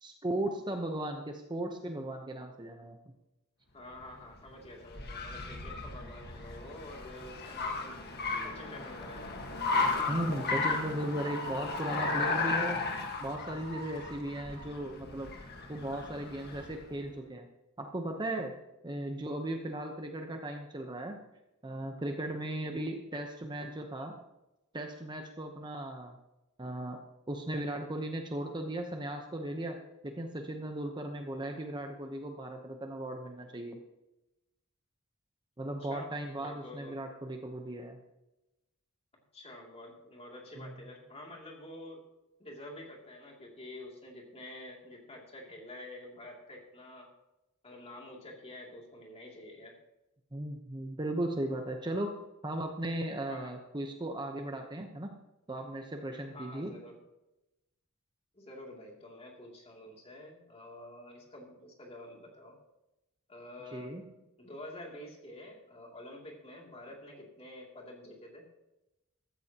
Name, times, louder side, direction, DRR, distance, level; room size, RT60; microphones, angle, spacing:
voice 1, 0.0-3.0 10.1-12.8 13.2-15.3 15.7-17.5 17.8-18.5 18.8-21.2 21.6-24.2 24.7-26.2 26.6-27.0 27.3-29.8 30.0-33.8 35.6-38.0 40.6-40.7 50.3-52.1 52.4-55.1 55.5-56.7 63.7-64.0, right 1 dB, 20° right, 4 dB, 0.9 m, -37 dB
voice 2, 3.7-8.2 8.4-9.2 35.8-36.1 36.4-36.9 39.1-42.0 42.4-47.1 47.6-49.8 53.3-53.6 56.3-57.0 58.3-62.6 63.3-63.9 64.4-68.5, left 1 dB, 30° left, -1 dB, 2.7 m, -48 dB
Car, 3.9-16.9, left 3 dB, 45° left, 1.6 m, -35 dB
15.0 x 13.5 x 2.9 m, 0.96 s
head